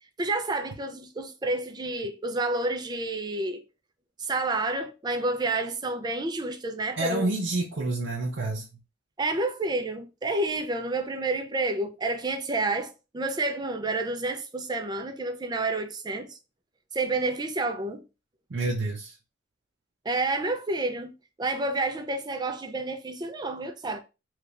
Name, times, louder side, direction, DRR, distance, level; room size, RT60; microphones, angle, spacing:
voice 1, 0.2-3.6 4.2-7.3 9.2-16.4 16.9-18.0 20.0-21.1 21.4-24.0, right 2 dB, 20° right, 0.4 m, -29 dB
voice 2, 7.0-8.7 18.5-19.1, right 2 dB, 70° right, 0.6 m, -28 dB
3.2 x 3.2 x 2.4 m
head